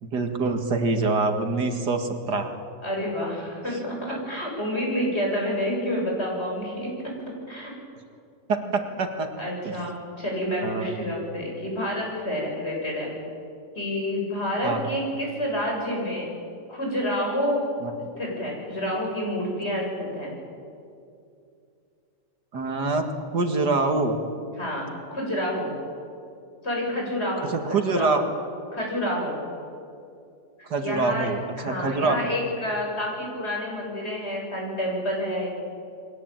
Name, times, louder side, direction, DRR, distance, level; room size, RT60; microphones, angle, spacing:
voice 1, 0.0-2.5 4.1-4.2 8.5-9.3 9.6-9.8 10.6-11.0 14.6-14.9 17.8-17.9 22.5-23.0 23.3-24.2 27.5-28.2 30.7-32.3, right 3 dB, 75° right, 5 dB, 2.5 m, -25 dB
voice 2, 2.8-7.1 7.5-7.7 8.6-8.7 9.4-13.1 13.8-16.3 16.7-17.6 18.2-20.3 24.6-25.7 26.6-28.3 28.7-29.4 30.8-31.3 31.6-35.5, equal, 35° left, -1 dB, 7.9 m, -28 dB
29.5 x 21.5 x 9.0 m, 2.5 s
omnidirectional pair, 1.8 m